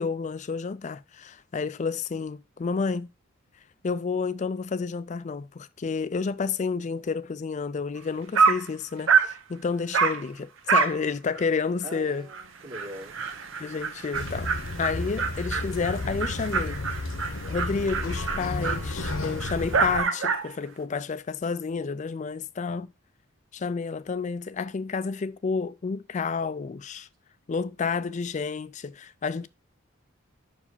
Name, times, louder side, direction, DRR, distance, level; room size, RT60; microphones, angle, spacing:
voice 1, 0.0-3.1 3.8-12.2 13.6-14.5 14.8-16.8 17.5-22.9 23.5-27.1 27.5-29.5, left 5 dB, 35° left, 0.4 m, -30 dB
Dog, 8.0-8.1 8.3-8.7 9.1-9.4 9.9-10.2 10.7-11.0 11.3-11.4 11.9-12.0 12.3-12.4 12.7-20.5, right 5 dB, 65° right, 0.8 m, -27 dB
voice 2, 11.8-13.4, right 1 dB, 40° right, 1.9 m, -42 dB
sound 1, 14.1-20.0, left 2 dB, 70° left, 0.9 m, -33 dB
5.5 x 4.8 x 5.6 m
head